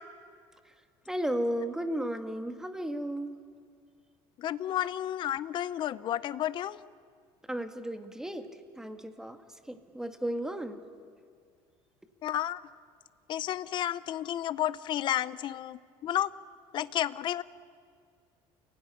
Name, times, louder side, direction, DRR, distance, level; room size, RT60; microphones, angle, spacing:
voice 1, 1.1-3.4 7.5-8.5 8.8-9.4 9.7-10.8, right 1 dB, 5° right, 7 dB, 1.6 m, -34 dB
voice 2, 4.4-6.8 12.2-12.7 13.3-16.3 16.7-17.4, left 12 dB, 45° left, 16 dB, 0.7 m, -31 dB
28.5 x 17.0 x 9.9 m, 2.1 s
cardioid pair, 125°, 11 cm